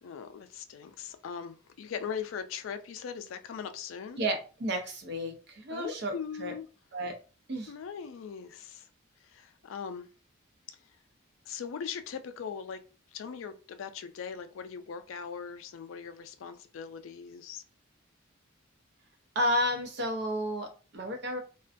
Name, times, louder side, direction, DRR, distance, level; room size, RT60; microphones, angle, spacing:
voice 1, 0.0-4.2 5.7-6.7 7.7-8.9 9.2-10.1 11.5-12.8 13.1-17.6, left 7 dB, 80° left, 0.4 m, -40 dB
voice 2, 4.2-6.5 6.9-7.2 7.5-7.7 19.3-21.4, equal, 60° right, 0.6 m, -32 dB
2.4 x 2.2 x 2.5 m
head